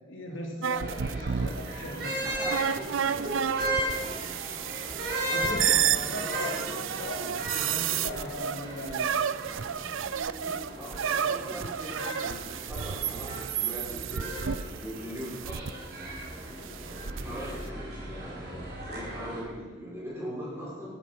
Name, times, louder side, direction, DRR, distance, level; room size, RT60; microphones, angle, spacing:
voice 1, 0.0-2.2 5.3-6.6 7.0-9.3 11.5-11.6, equal, 80° left, 0 dB, 3.5 m, -39 dB
sound 1, 0.6-15.7 16.6-17.2, right 9 dB, 80° right, 0.5 m, -31 dB
sound 2, 0.7-19.4, right 1 dB, 50° right, 4.7 m, -36 dB
voice 2, 2.2-2.6 3.0-4.1 5.1-6.6 10.8-15.7 16.9-18.6 18.9-20.9, equal, 10° right, -6 dB, 6.1 m, -40 dB
14.5 x 12.0 x 6.0 m, 1.3 s
head